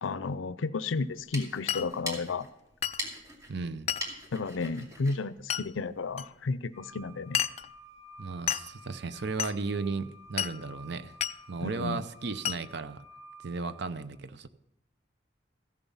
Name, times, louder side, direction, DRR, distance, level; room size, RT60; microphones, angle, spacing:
voice 1, 0.0-2.5 4.3-7.4 11.6-12.0, left 4 dB, 85° left, 0.5 m, -32 dB
sound 1, 1.0-6.3, equal, 20° right, 2.4 m, -43 dB
Glass, 1.7-1.9 2.8-3.0 3.9-4.1 5.5-5.7 6.2-6.3 7.3-7.7 8.5-8.7 9.4-9.6 10.4-10.6 11.2-11.4 12.4-12.6, left 10 dB, 35° left, 0.3 m, -31 dB
voice 2, 3.5-3.9 8.2-11.1 11.5-13.0 13.4-14.5, right 4 dB, 60° right, 0.6 m, -35 dB
sound 2, 6.7-13.8, right 2 dB, 85° right, 5.7 m, -52 dB
15.0 x 7.2 x 5.5 m
head